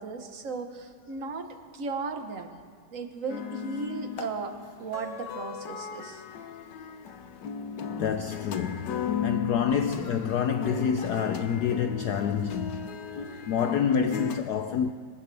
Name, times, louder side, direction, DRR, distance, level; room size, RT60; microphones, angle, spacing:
voice 1, 0.0-1.5 1.7-2.5 2.9-6.2, right 4 dB, 45° right, 1.2 m, -36 dB
sound 1, 3.3-14.4, left 6 dB, 60° left, 1.4 m, -36 dB
voice 2, 7.8-12.9 13.5-14.9, left 7 dB, 80° left, 0.9 m, -28 dB
25.5 x 14.5 x 3.4 m
omnidirectional pair, 2.3 m